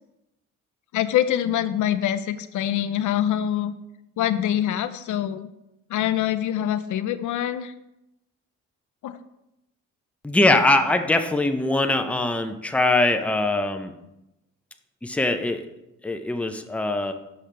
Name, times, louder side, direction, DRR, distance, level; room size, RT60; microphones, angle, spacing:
voice 1, 0.9-3.7 4.2-5.5 5.9-7.7 9.0-9.2, left 11 dB, 65° left, 11 dB, 0.5 m, -24 dB
voice 2, 10.2-13.9 15.0-15.6 16.0-17.1, left 2 dB, 5° left, 7 dB, 0.6 m, -22 dB
6.6 x 5.7 x 3.3 m, 0.90 s
cardioid pair, 75°, 32 cm